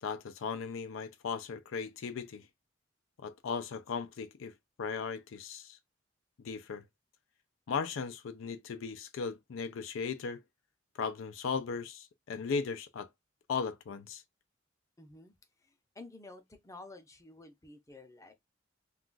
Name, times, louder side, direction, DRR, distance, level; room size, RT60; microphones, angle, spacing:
voice 1, 0.0-2.5 3.2-5.8 6.4-6.9 7.7-10.4 11.0-13.1 13.5-14.2, left 5 dB, 85° left, 0.4 m, -37 dB
voice 2, 15.0-15.3 15.6-18.3, left 2 dB, 15° left, 0.5 m, -51 dB
2.3 x 2.3 x 3.8 m
head